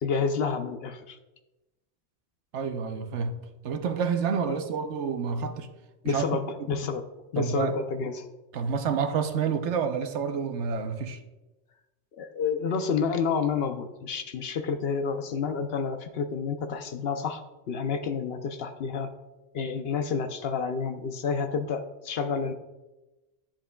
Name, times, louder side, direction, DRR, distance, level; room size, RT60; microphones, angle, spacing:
voice 1, 0.0-1.2 6.0-7.1 7.3-8.3 12.2-17.4 17.7-19.1 19.5-22.5, left 5 dB, 65° left, 0.8 m, -29 dB
voice 2, 2.5-3.3 3.6-5.7 6.0-6.2 6.6-6.7 7.4-7.7 8.5-11.2, right 6 dB, 75° right, 1.0 m, -28 dB
11.0 x 7.2 x 2.2 m
omnidirectional pair, 1.2 m